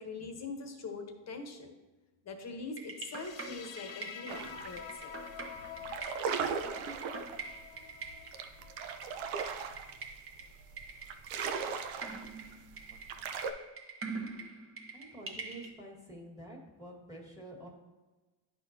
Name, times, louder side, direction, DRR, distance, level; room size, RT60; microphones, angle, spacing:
voice 1, 0.0-1.7 2.2-5.1, left 3 dB, 35° left, 5 dB, 1.0 m, -43 dB
sound 1, 2.8-15.7, right 4 dB, 30° right, 0.9 m, -45 dB
sound 2, 3.0-10.1, left 9 dB, 70° left, 0.6 m, -49 dB
sound 3, 4.3-4.8 5.1-5.4 5.7-13.5, right 6 dB, 85° right, 0.8 m, -38 dB
voice 2, 14.9-17.7, right 1 dB, 10° right, -1 dB, 1.7 m, -48 dB
11.5 x 4.3 x 2.7 m, 1.2 s
cardioid pair, 115°, 46 cm